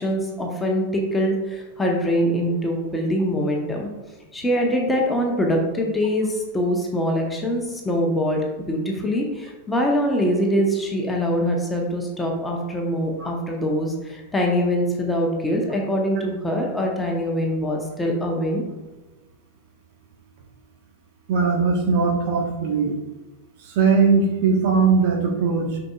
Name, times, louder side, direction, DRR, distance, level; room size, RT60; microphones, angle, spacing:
voice 1, 0.0-3.9 4.3-18.6, equal, 10° left, 0 dB, 1.1 m, -23 dB
voice 2, 21.3-22.9 23.7-25.8, right 5 dB, 45° right, 0 dB, 1.4 m, -19 dB
6.5 x 5.9 x 2.4 m, 1.1 s
figure-of-eight pair, 90°, 0 cm